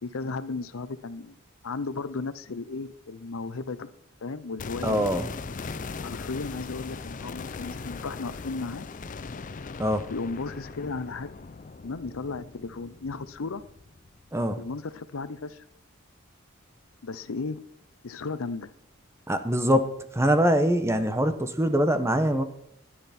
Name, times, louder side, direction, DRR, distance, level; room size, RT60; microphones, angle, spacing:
voice 1, 0.0-1.3 1.6-3.9 4.2-5.1 6.0-8.8 10.1-11.3 11.8-13.6 14.6-15.6 17.0-17.6 18.0-18.7, left 4 dB, 80° left, 0.7 m, -35 dB
sound 1, 4.6-14.6 14.9-15.0, left 4 dB, 40° left, 0.5 m, -39 dB
voice 2, 4.8-5.3 9.8-10.1 14.3-14.6 19.3-22.4, equal, 15° right, 0.9 m, -23 dB
10.5 x 10.5 x 4.3 m
head